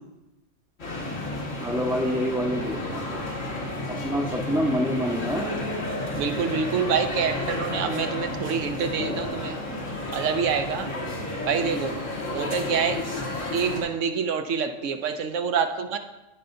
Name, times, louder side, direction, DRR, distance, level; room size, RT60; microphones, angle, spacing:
sound 1, 0.8-13.8, left 1 dB, 75° left, 2.0 m, -31 dB
voice 1, 1.6-3.2 3.9-5.5, equal, 5° right, -3 dB, 0.7 m, -27 dB
voice 2, 6.2-9.6 10.1-10.9 11.4-11.9 12.3-13.0 13.5-16.0, right 6 dB, 75° right, 7 dB, 1.0 m, -26 dB
16.5 x 5.5 x 2.6 m, 1.0 s
omnidirectional pair, 1.3 m